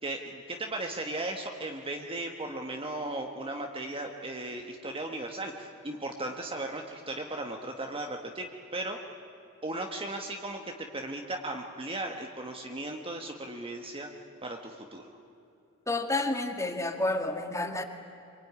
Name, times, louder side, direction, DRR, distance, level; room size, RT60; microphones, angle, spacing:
voice 1, 0.0-9.0 9.6-14.1 14.4-15.1, right 2 dB, 25° right, 3 dB, 1.5 m, -36 dB
voice 2, 15.9-17.8, left 2 dB, 15° left, 6 dB, 2.0 m, -30 dB
26.5 x 23.0 x 9.6 m, 2.9 s
head